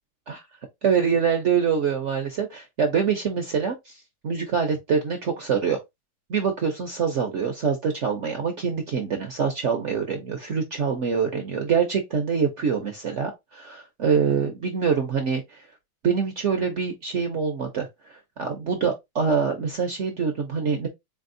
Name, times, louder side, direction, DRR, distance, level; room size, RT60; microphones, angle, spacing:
voice 1, 0.8-5.8 6.3-15.7 16.0-20.9, right 6 dB, 65° right, 0.7 m, -25 dB
4.1 x 3.4 x 2.6 m
omnidirectional pair, 2.1 m